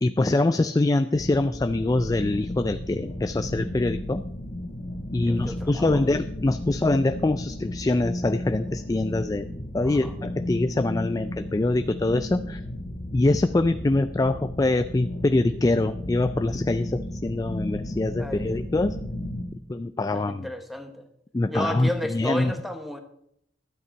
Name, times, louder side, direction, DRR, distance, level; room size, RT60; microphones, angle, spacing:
voice 1, 0.0-4.2 5.1-9.5 9.7-12.6 13.1-19.0 19.7-20.5 21.3-22.5, left 2 dB, 20° left, 10 dB, 0.3 m, -24 dB
sound 1, 1.1-19.4, left 1 dB, 55° left, 1.5 m, -34 dB
voice 2, 5.2-6.0 9.8-10.1 18.2-18.5 20.3-21.1 21.5-23.0, equal, ahead, 7 dB, 1.0 m, -33 dB
12.5 x 8.8 x 4.5 m, 0.75 s
head